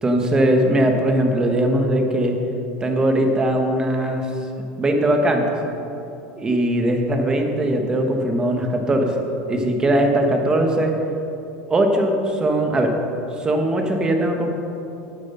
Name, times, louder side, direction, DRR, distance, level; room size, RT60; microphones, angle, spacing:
voice 1, 0.0-2.3 2.8-4.3 4.8-5.5 6.4-9.1 9.5-10.9 11.7-12.9 13.4-14.5, right 1 dB, 20° right, 3 dB, 1.3 m, -20 dB
9.1 x 8.1 x 5.7 m, 2.9 s
supercardioid pair, 125°, 4 cm